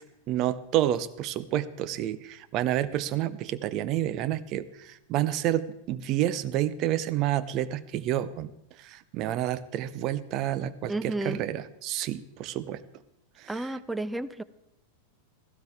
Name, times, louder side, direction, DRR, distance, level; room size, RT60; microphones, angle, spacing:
voice 1, 0.3-8.5 8.8-12.8 13.4-13.7, right 12 dB, 40° right, 14 dB, 0.8 m, -29 dB
voice 2, 10.9-11.4 13.5-14.4, right 2 dB, 5° right, 15 dB, 0.6 m, -32 dB
17.0 x 15.0 x 3.6 m, 0.84 s
figure-of-eight pair, 90°, 0 cm